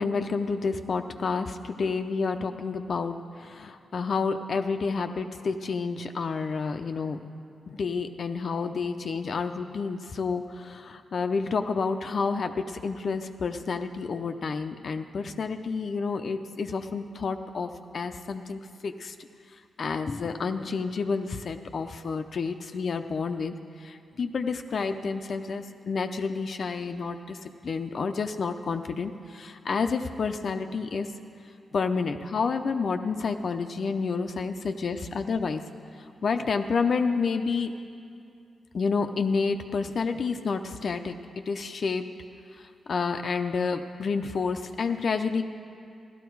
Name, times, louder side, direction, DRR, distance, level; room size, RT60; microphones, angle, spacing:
voice 1, 0.0-7.2 7.7-19.1 19.8-23.5 23.8-27.4 27.6-31.1 31.7-35.6 36.2-37.7 38.7-41.2 41.5-42.0 42.9-45.4, left 5 dB, 60° left, 6 dB, 0.6 m, -29 dB
14.5 x 12.5 x 4.6 m, 2.4 s
cardioid pair, 65°, 0 cm